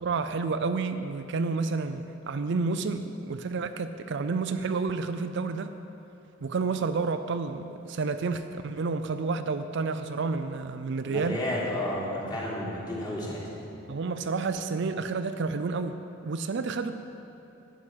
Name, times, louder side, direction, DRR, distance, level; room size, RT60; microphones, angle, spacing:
voice 1, 0.0-5.7 6.4-11.4 13.9-16.0 16.2-16.9, right 4 dB, 60° right, 9 dB, 0.4 m, -30 dB
voice 2, 11.0-13.4, left 1 dB, 20° left, -8 dB, 3.4 m, -32 dB
11.5 x 6.2 x 9.0 m, 2.8 s
head